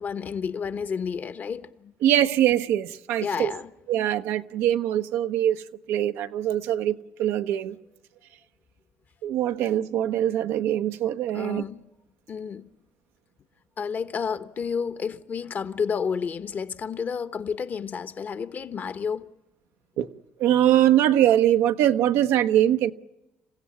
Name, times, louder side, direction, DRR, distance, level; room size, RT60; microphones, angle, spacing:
voice 1, 0.0-1.9 3.2-3.7 11.3-11.9 12.3-12.7 13.8-19.3, left 6 dB, 45° left, 1.1 m, -31 dB
voice 2, 2.0-3.5 3.9-5.6 5.9-7.8 9.2-11.6 20.0-20.1 20.4-22.9, right 11 dB, 80° right, 0.9 m, -22 dB
28.0 x 16.0 x 8.5 m
supercardioid pair, 85°, 4 cm